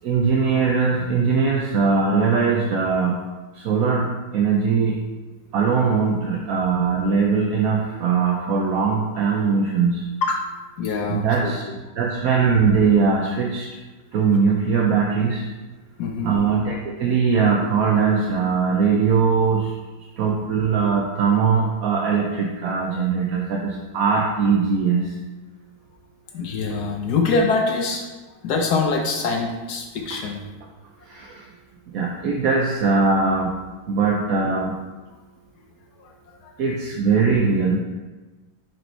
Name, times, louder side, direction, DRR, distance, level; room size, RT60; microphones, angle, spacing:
voice 1, 0.0-3.2 3.5-5.0 5.5-10.0 11.1-11.6 11.9-13.7 14.1-15.4 16.2-19.7 20.2-25.1 31.1-31.4 31.9-33.5 33.9-34.8 36.6-37.8, right 5 dB, 65° right, -1 dB, 0.9 m, -20 dB
voice 2, 10.8-11.8 16.0-16.4 26.3-28.1 28.4-30.4 36.0-36.1 36.4-36.5, left 4 dB, 65° left, 2 dB, 1.1 m, -24 dB
5.1 x 4.6 x 4.5 m, 1.2 s
omnidirectional pair, 2.0 m